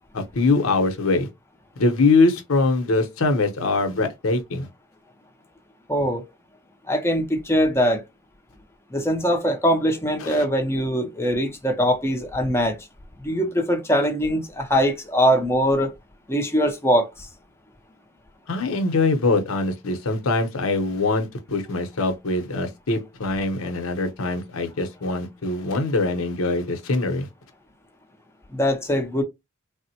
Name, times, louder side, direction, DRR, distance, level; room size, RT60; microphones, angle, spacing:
voice 1, 0.1-1.3 1.8-4.7 10.2-10.4 18.5-27.3, left 3 dB, 85° left, 0.8 m, -23 dB
voice 2, 5.9-6.2 6.9-8.0 8.9-12.8 13.2-15.9 16.3-17.3 28.5-29.2, equal, 10° left, 0.6 m, -22 dB
3.5 x 2.1 x 2.8 m
head